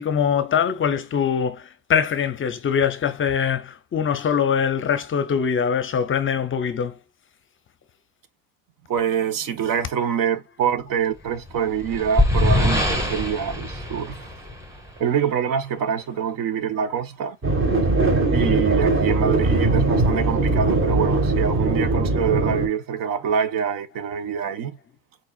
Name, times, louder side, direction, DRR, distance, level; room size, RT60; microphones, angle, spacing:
voice 1, 0.0-7.0, left 7 dB, 30° left, 0.6 m, -23 dB
voice 2, 8.9-14.3 15.0-17.4 18.3-24.8, right 8 dB, 55° right, 1.0 m, -25 dB
sound 1, 11.4-15.0, left 1 dB, 10° right, 1.6 m, -23 dB
sound 2, 17.4-22.7, right 2 dB, 30° right, 1.9 m, -20 dB
4.7 x 4.4 x 2.3 m
supercardioid pair, 105°, 40 cm